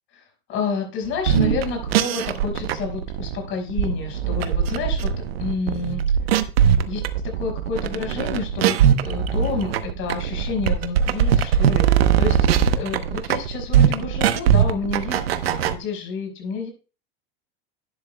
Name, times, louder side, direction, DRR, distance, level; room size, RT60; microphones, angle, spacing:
voice 1, 0.5-5.1 5.4-6.1 6.9-7.0 7.4-16.7, left 4 dB, 45° left, 3 dB, 5.1 m, -29 dB
sound 1, 1.1-15.7, right 9 dB, 85° right, 0.9 m, -21 dB
11.0 x 10.5 x 2.2 m, 0.33 s
hypercardioid pair, 110°, 29 cm